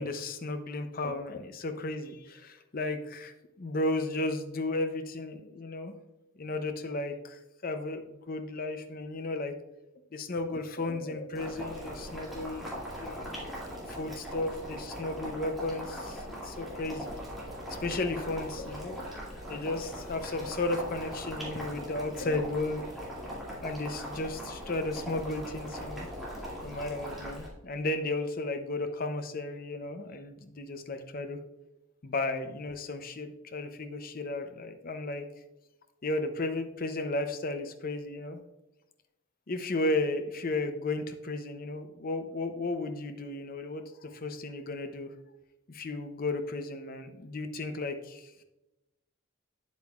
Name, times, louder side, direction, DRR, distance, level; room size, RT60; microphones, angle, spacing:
voice 1, 0.0-5.9 6.4-9.5 10.1-13.3 13.9-17.2 17.7-19.1 19.5-22.8 23.2-23.3 23.6-26.1 26.6-31.4 32.0-35.2 36.0-38.4 39.5-45.1 45.7-48.4, left 2 dB, 45° left, 7 dB, 0.7 m, -34 dB
Boiling, 11.3-27.5, equal, ahead, 2.5 m, -40 dB
8.7 x 8.1 x 2.4 m, 0.95 s
head